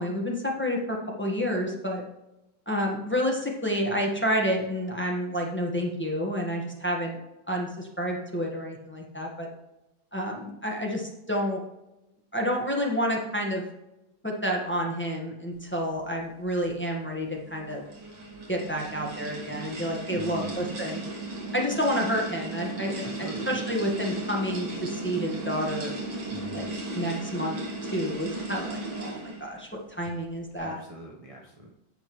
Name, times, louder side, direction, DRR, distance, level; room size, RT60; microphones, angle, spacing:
voice 1, 0.0-2.0 2.7-7.2 7.5-9.5 10.1-11.6 12.3-13.6 14.2-17.8 18.5-21.0 21.5-25.9 26.5-26.6 26.9-27.6 27.9-30.8, equal, 5° left, -1 dB, 1.0 m, -29 dB
sound 1, 17.4-29.5, right 2 dB, 75° right, 2.8 m, -35 dB
voice 2, 20.1-20.7 23.0-23.6 26.3-26.8 30.6-31.7, equal, 40° right, -2 dB, 0.5 m, -41 dB
9.8 x 7.1 x 3.1 m, 0.94 s
omnidirectional pair, 2.1 m